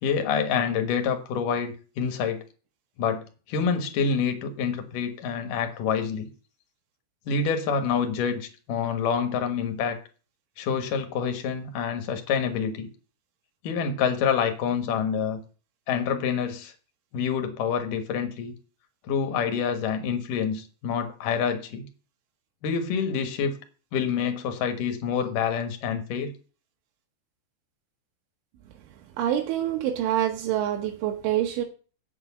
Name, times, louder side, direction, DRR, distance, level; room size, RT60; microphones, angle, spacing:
voice 1, 0.0-2.4 3.0-6.3 7.3-10.0 10.6-12.9 13.6-15.4 15.9-16.7 17.1-18.5 19.1-21.9 22.6-23.6 23.9-26.3, left 6 dB, 60° left, 6 dB, 2.4 m, -27 dB
voice 2, 29.2-31.7, right 11 dB, 85° right, 3 dB, 3.7 m, -26 dB
8.2 x 7.6 x 7.1 m, 0.37 s
omnidirectional pair, 5.4 m